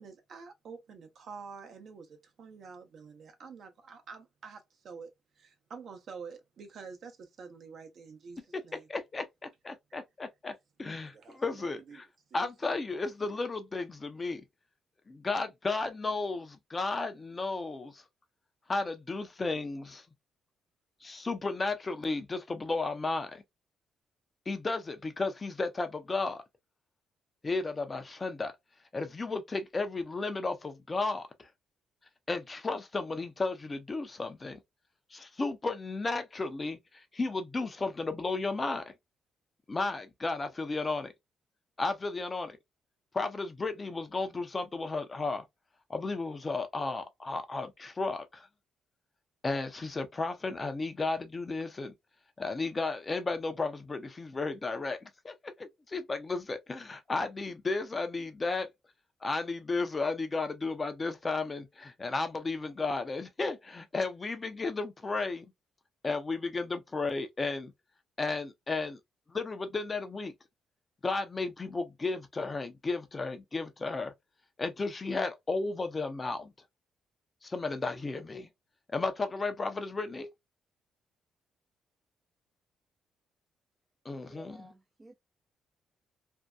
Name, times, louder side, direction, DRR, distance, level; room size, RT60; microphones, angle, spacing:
voice 1, 0.0-8.9 10.9-12.0 12.3-12.7, right 5 dB, 60° right, 0.7 m, -48 dB
voice 2, 8.9-10.5 10.8-12.0 12.3-14.4 15.1-18.0 18.7-20.0 21.0-23.4 24.5-26.4 27.4-28.5 28.9-31.5 32.3-34.6 35.1-36.8 37.1-38.8 39.7-41.1 41.8-42.6 43.1-45.4 45.9-48.5 49.4-51.9 52.4-58.7 59.2-65.4 66.0-67.7 68.2-69.0 69.3-70.3 71.0-74.1 74.6-76.5 77.4-78.5 78.9-80.3 84.0-84.7, left 3 dB, 30° left, 0.5 m, -33 dB
voice 3, 84.3-85.2, right 2 dB, 20° right, 0.4 m, -53 dB
2.6 x 2.2 x 2.2 m
cardioid pair, 90°, 0 cm